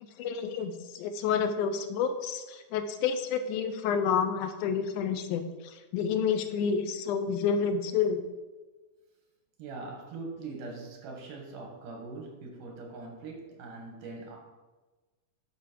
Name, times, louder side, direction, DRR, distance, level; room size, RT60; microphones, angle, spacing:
voice 1, 0.2-8.2, left 6 dB, 80° left, 8 dB, 2.0 m, -29 dB
voice 2, 9.6-14.4, right 3 dB, 80° right, 1 dB, 3.2 m, -42 dB
11.0 x 5.1 x 4.5 m, 1.2 s
omnidirectional pair, 3.7 m